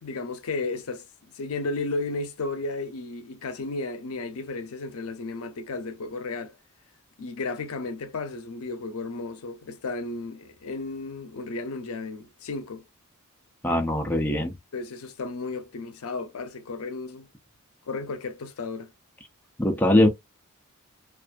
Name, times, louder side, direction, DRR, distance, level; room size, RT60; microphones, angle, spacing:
voice 1, 0.0-6.5 7.2-12.8 14.1-14.2 14.7-17.3 17.9-18.9, left 3 dB, 75° left, 0.5 m, -34 dB
voice 2, 13.6-14.5 19.6-20.1, left 1 dB, 10° left, 0.3 m, -21 dB
2.4 x 2.4 x 2.2 m
head